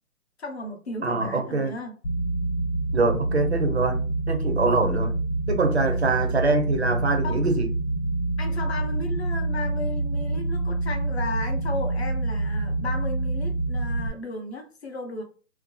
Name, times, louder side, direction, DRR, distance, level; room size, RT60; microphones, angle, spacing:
voice 1, 0.4-1.9 7.2-7.4 8.4-15.2, left 3 dB, 45° left, 0.6 m, -35 dB
voice 2, 1.0-1.7 2.9-5.1 5.5-7.7, right 3 dB, 50° right, 0.4 m, -24 dB
sound 1, 2.0-14.1, right 2 dB, 65° left, 1.0 m, -26 dB
2.5 x 2.3 x 2.2 m
hypercardioid pair, 170°, 45 cm